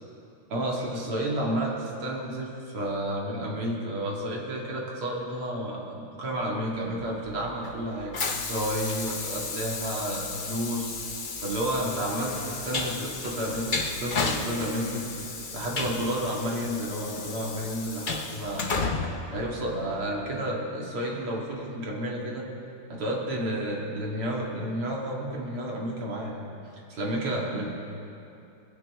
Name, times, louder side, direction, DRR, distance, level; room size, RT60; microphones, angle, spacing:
voice 1, 0.5-10.9 11.4-18.7 19.3-22.5 22.9-26.5 27.0-27.7, right 1 dB, 85° right, -3 dB, 3.1 m, -31 dB
Train, 7.0-20.2, left 4 dB, 75° left, 0.4 m, -33 dB
20.5 x 16.0 x 3.7 m, 2.7 s
omnidirectional pair, 2.4 m